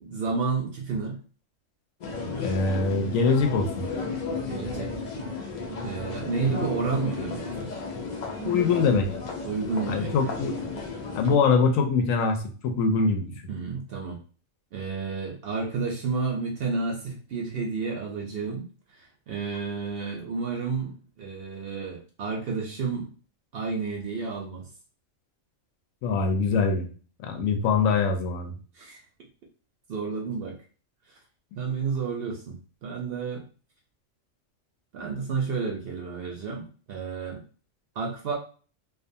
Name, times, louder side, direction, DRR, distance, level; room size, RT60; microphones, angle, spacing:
voice 1, 0.0-1.2 4.5-4.9 5.8-7.7 9.4-10.1 13.5-14.2 14.7-18.7 18.9-23.1 23.5-24.7 28.7-29.0 29.9-30.6 31.6-32.6 32.8-33.4 34.9-37.4 38.0-38.3, right 5 dB, 65° right, 0 dB, 0.6 m, -31 dB
sound 1, 2.0-11.4, left 3 dB, 70° left, 0.4 m, -33 dB
voice 2, 2.4-3.9 8.4-9.1 9.9-10.5 11.1-13.3 26.0-26.9 27.2-28.6, left 4 dB, 90° left, 5 dB, 1.0 m, -23 dB
2.5 x 2.3 x 2.6 m, 0.39 s
omnidirectional pair, 1.3 m